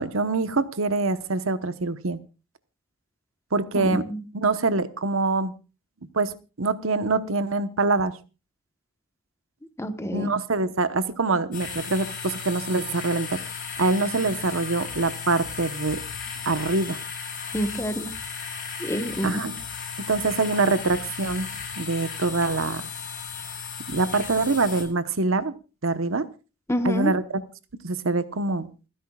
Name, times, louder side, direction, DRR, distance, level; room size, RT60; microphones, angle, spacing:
voice 1, 0.0-2.2 3.5-4.0 4.3-5.5 6.1-8.1 10.1-13.4 13.8-16.0 16.4-17.0 19.2-19.6 20.0-21.5 21.8-22.9 23.9-25.5 25.8-26.2 26.8-27.4 27.8-28.7, right 3 dB, 75° right, 12 dB, 1.1 m, -24 dB
voice 2, 3.7-4.2 9.8-10.3 17.5-18.1 18.8-19.5 26.7-27.1, equal, 15° left, 9 dB, 1.2 m, -28 dB
sound 1, 11.5-24.8, left 6 dB, 40° left, 7.1 m, -35 dB
29.0 x 10.0 x 2.4 m, 0.33 s
head